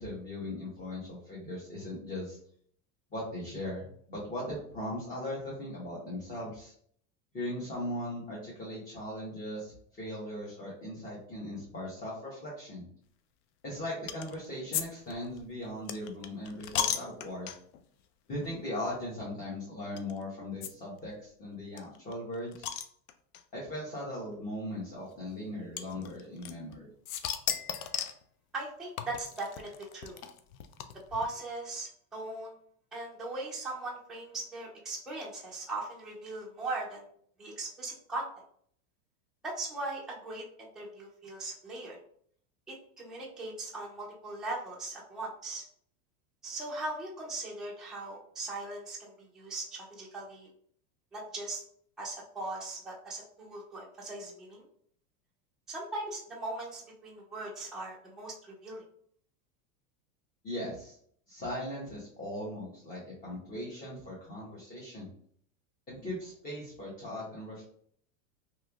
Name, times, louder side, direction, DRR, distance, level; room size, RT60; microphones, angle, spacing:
voice 1, 0.0-2.4 3.1-6.7 7.3-12.8 13.6-17.5 18.3-22.7 23.5-26.9 60.4-61.0 61.3-65.1 65.9-67.6, left 1 dB, 20° left, -6 dB, 0.9 m, -39 dB
sound 1, 14.1-14.4 14.7-14.8 15.1-17.8 18.4-18.6 18.8-18.9 20.0-20.1 20.6-20.7 21.0-21.1 21.3-21.4 21.8-23.4 24.3-24.4 25.8-26.8 27.1-28.2 29.0-31.2, left 9 dB, 85° left, 0.5 m, -35 dB
voice 2, 28.5-30.2 31.1-32.5 32.9-37.1 37.4-38.3 39.4-42.0 42.7-45.6 46.4-50.5 51.1-51.6 52.0-54.6 55.7-58.8, right 2 dB, ahead, -5 dB, 0.4 m, -39 dB
3.2 x 2.9 x 2.3 m, 0.62 s
supercardioid pair, 135°, 43 cm